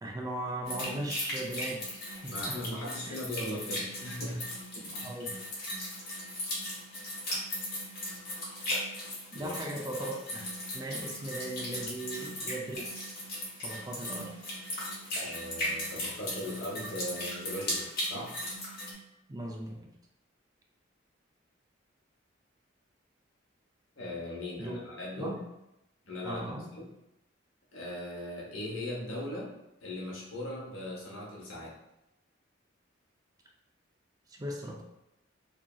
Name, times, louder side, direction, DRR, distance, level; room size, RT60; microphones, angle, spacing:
voice 1, 0.0-1.8 2.1-2.6 3.1-3.2 5.0-5.3 9.3-10.5 10.7-13.2 13.6-14.4 19.3-19.9 24.6-24.8 25.2-25.4 26.2-26.7 34.3-34.8, right 1 dB, 20° right, 0 dB, 0.3 m, -38 dB
sound 1, 0.6-18.9, left 1 dB, 50° left, 1.1 m, -37 dB
voice 2, 2.3-4.5 4.7-5.1 9.3-9.5 15.2-18.4 24.0-25.4 26.0-26.9 27.7-29.5 29.8-31.8, left 1 dB, 85° left, -4 dB, 0.9 m, -39 dB
2.8 x 2.6 x 2.2 m, 0.90 s
head